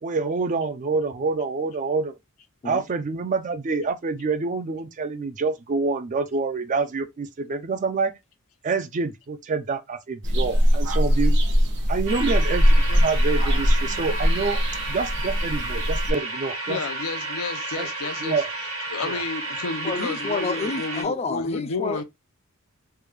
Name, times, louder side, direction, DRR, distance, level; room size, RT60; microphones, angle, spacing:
voice 1, 0.0-2.2 2.6-8.1 8.6-11.4 11.9-14.6 14.9-16.8 17.8-17.9 18.2-18.5 19.0-19.2, right 4 dB, 35° right, 0.4 m, -27 dB
sound 1, 10.2-16.1, equal, 60° right, 0.9 m, -21 dB
sound 2, 12.1-21.0, right 2 dB, 80° right, 1.1 m, -32 dB
voice 2, 16.7-18.4 18.9-22.0, left 4 dB, 85° left, 0.5 m, -31 dB
voice 3, 19.8-22.0, left 3 dB, 30° left, 0.5 m, -29 dB
3.4 x 2.3 x 3.2 m
head